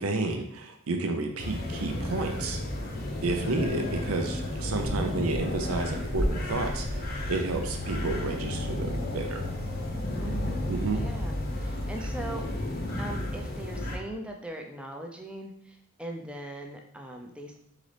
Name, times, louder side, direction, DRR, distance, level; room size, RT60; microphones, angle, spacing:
voice 1, 0.0-2.6 3.2-9.4 10.7-11.0, right 3 dB, 80° right, 4 dB, 0.6 m, -31 dB
sound 1, 1.4-14.0, left 1 dB, 45° left, 0.8 m, -32 dB
voice 2, 3.3-3.8 10.2-12.5 13.0-17.6, right 1 dB, 5° right, 2 dB, 0.5 m, -40 dB
4.0 x 3.8 x 3.3 m, 0.70 s
head